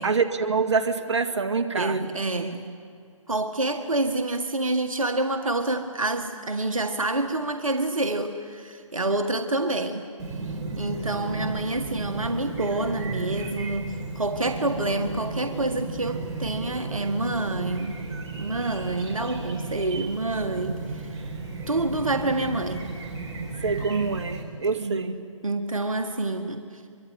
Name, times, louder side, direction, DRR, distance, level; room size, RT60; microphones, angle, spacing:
voice 1, 0.0-2.1 23.6-25.2, right 4 dB, 55° right, 6 dB, 2.1 m, -25 dB
voice 2, 1.7-2.7 3.3-10.0 10.8-18.0 18.4-21.0 21.7-22.9 24.7-25.0 25.4-26.8, right 2 dB, 80° right, 6 dB, 1.8 m, -27 dB
Chirp tweet, 10.2-24.4, right 3 dB, 20° right, 4.2 m, -34 dB
24.0 x 24.0 x 9.7 m, 2.2 s
figure-of-eight pair, 135°, 17 cm